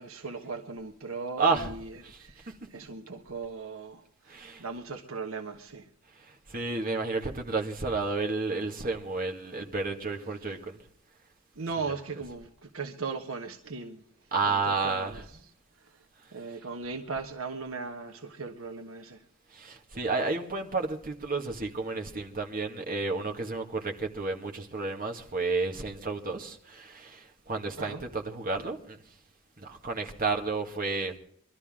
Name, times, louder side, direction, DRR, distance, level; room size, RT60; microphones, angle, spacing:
voice 1, 0.0-5.9 10.3-10.5 11.5-14.0 14.4-15.2 15.8-16.0 16.3-19.2 27.8-28.0, right 4 dB, 70° right, 1.3 m, -38 dB
voice 2, 1.4-1.7 2.0-2.5 4.3-4.6 6.2-10.8 14.3-15.4 19.5-29.0 29.6-31.1, right 3 dB, 40° right, 2.0 m, -31 dB
23.0 x 13.0 x 3.7 m
head